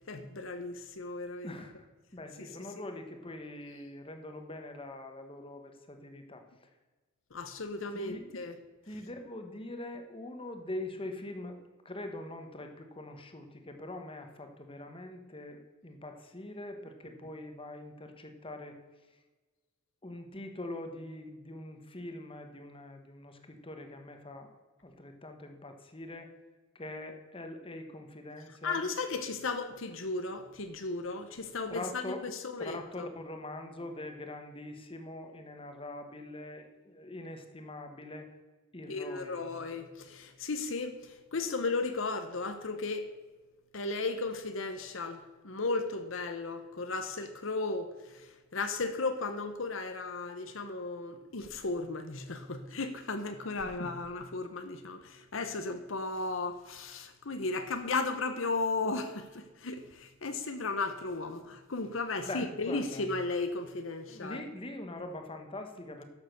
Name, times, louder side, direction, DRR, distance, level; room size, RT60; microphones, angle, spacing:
voice 1, 0.1-1.5 2.4-2.5 7.3-8.6 28.6-32.1 32.4-33.1 38.9-43.1 43.7-64.4, left 3 dB, 70° left, 8 dB, 1.0 m, -35 dB
voice 2, 1.4-1.9 2.1-6.4 7.9-8.3 8.9-11.6 11.8-18.8 20.0-24.5 24.8-26.3 26.7-28.9 31.7-32.2 32.6-38.3 38.7-39.4 62.3-63.0 64.1-66.0, left 1 dB, 25° left, 5 dB, 1.2 m, -43 dB
11.5 x 6.9 x 6.6 m, 1.2 s
head